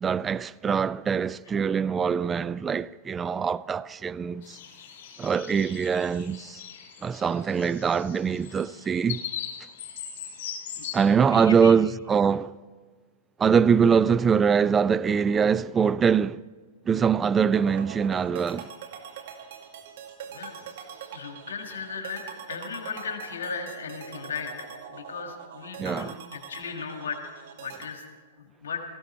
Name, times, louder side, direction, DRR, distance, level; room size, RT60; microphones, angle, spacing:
voice 1, 0.0-4.6 5.2-6.6 7.0-9.2 10.9-12.5 13.4-16.4 16.9-18.7 25.8-26.1, right 6 dB, 20° right, 0.3 m, -23 dB
sound 1, 4.4-11.0, left 9 dB, 55° left, 4.9 m, -40 dB
voice 2, 11.2-11.7 20.3-20.5 21.1-22.2 22.5-27.2 27.6-28.0 28.4-28.8, left 5 dB, 75° left, 1.8 m, -36 dB
sound 2, 17.5-27.9, right 7 dB, 60° right, 2.0 m, -43 dB
17.5 x 15.0 x 4.3 m
hypercardioid pair, 105°, 0 cm